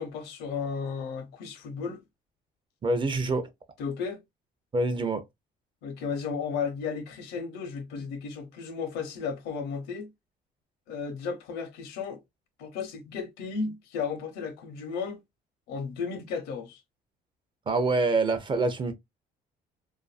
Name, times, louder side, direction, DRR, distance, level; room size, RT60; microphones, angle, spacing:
voice 1, 0.0-2.0 3.8-4.2 5.8-10.1 10.9-12.2 12.6-15.2 15.7-16.8, left 5 dB, 90° left, 0.8 m, -34 dB
voice 2, 2.8-3.5 4.7-5.2 17.7-18.9, right 3 dB, 30° right, 0.5 m, -26 dB
2.6 x 2.5 x 2.4 m
cardioid pair, 110°, 17 cm